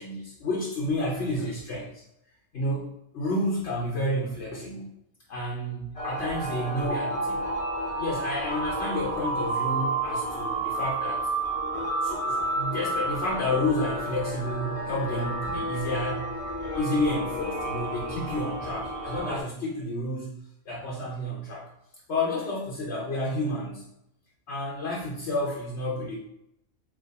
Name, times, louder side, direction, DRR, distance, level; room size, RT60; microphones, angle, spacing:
voice 1, 0.0-2.0 2.5-4.9 5.3-7.5 8.0-11.3 12.0-16.3 16.6-20.4 20.7-21.6 22.1-23.8 24.5-26.2, left 1 dB, 60° left, -5 dB, 1.1 m, -30 dB
sound 1, 6.0-19.4, right 2 dB, 30° left, 0.7 m, -31 dB
3.5 x 3.1 x 4.0 m, 0.80 s
omnidirectional pair, 1.3 m